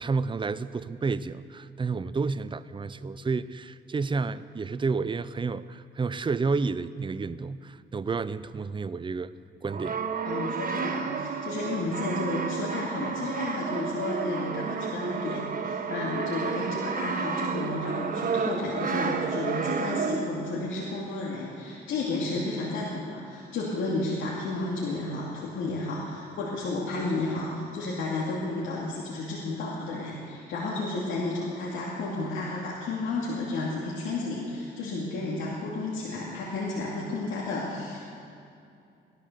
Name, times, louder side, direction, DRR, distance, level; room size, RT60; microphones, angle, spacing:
voice 1, 0.0-9.3 9.6-10.0, right 4 dB, 25° right, 15 dB, 0.5 m, -30 dB
Brass instrument, 9.7-20.5, right 5 dB, 45° right, 1.1 m, -31 dB
voice 2, 10.2-38.1, left 2 dB, 80° left, -5 dB, 2.5 m, -32 dB
17.0 x 12.0 x 6.7 m, 2.5 s
cardioid pair, 90°, 20 cm